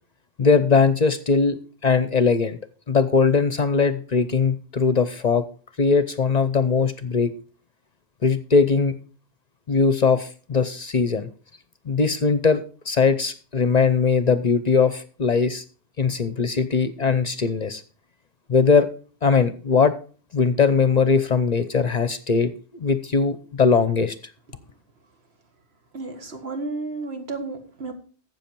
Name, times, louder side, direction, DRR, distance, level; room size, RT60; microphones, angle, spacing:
voice 1, 0.4-2.6 2.9-5.4 5.8-7.3 8.2-9.0 9.7-11.3 11.9-15.6 16.0-17.8 18.5-18.9 19.2-19.9 20.3-24.2, left 5 dB, 45° left, 13 dB, 0.7 m, -20 dB
voice 2, 25.9-27.9, right 3 dB, 75° right, 6 dB, 1.9 m, -32 dB
12.5 x 7.8 x 4.5 m, 0.39 s
omnidirectional pair, 1.1 m